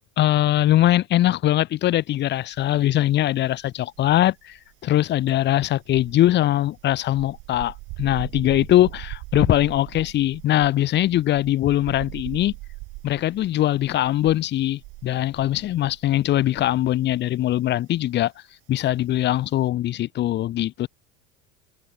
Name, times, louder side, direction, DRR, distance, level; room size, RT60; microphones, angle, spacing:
voice 1, 0.2-12.5 13.0-18.3 18.7-20.9, left 13 dB, 30° left, 4.3 m, -21 dB
sound 1, 2.5-3.3 3.6-17.1 17.4-17.7, right 24 dB, 40° right, 4.1 m, -40 dB
supercardioid pair, 175°, 36 cm